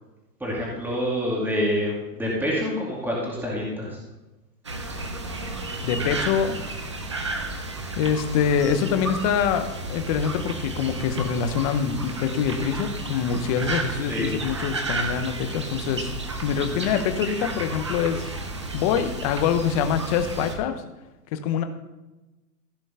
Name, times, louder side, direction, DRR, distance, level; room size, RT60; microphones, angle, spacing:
voice 1, 0.4-4.0 14.1-14.3, equal, 5° right, -4 dB, 2.3 m, -27 dB
sound 1, 4.6-20.6, right 2 dB, 20° right, 0.4 m, -32 dB
voice 2, 5.8-6.6 8.0-16.1 16.4-18.4 18.7-20.8 21.3-21.6, left 7 dB, 25° left, 8 dB, 0.7 m, -25 dB
15.0 x 5.3 x 5.5 m, 1.0 s
hypercardioid pair, 150°, 49 cm